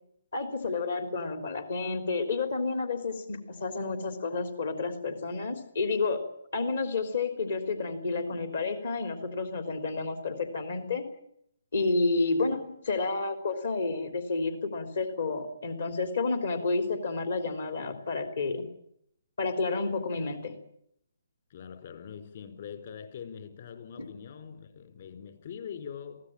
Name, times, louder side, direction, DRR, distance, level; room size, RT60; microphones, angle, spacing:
voice 1, 0.3-6.2 6.5-11.1 11.7-18.7 19.4-20.5 24.0-24.1, left 3 dB, 65° left, 7 dB, 3.4 m, -30 dB
voice 2, 21.5-26.2, left 7 dB, 50° left, 8 dB, 4.8 m, -43 dB
23.0 x 16.5 x 9.0 m, 0.72 s
figure-of-eight pair, 140°, 0 cm